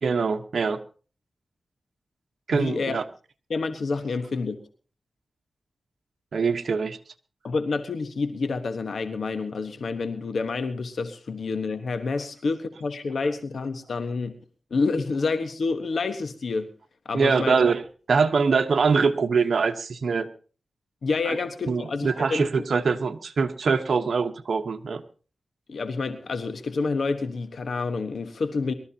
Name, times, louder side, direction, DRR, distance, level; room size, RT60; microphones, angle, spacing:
voice 1, 0.0-0.8 2.5-3.0 6.3-7.0 17.1-17.8 18.1-20.3 21.3-21.4 21.7-25.0, right 5 dB, 75° right, 7 dB, 1.1 m, -23 dB
voice 2, 2.5-3.0 3.5-4.6 7.4-14.3 14.7-16.7 17.0-17.6 21.0-22.5 25.7-28.7, left 4 dB, 75° left, 9 dB, 1.3 m, -28 dB
23.5 x 13.5 x 2.9 m, 0.38 s
cardioid pair, 55°, 0 cm